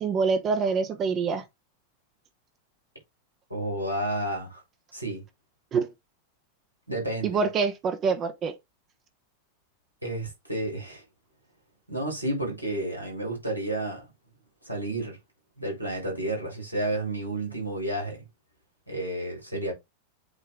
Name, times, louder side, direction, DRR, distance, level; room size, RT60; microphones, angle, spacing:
voice 1, 0.0-1.4 5.7-5.9 7.2-8.5, right 5 dB, 30° right, 1.0 m, -25 dB
voice 2, 3.5-4.6 4.9-5.2 6.9-7.4 10.0-11.0 11.9-14.1 14.6-15.2 15.6-18.2 18.9-19.7, right 1 dB, 85° right, 3.8 m, -31 dB
8.2 x 3.4 x 3.7 m
figure-of-eight pair, 90°, 0 cm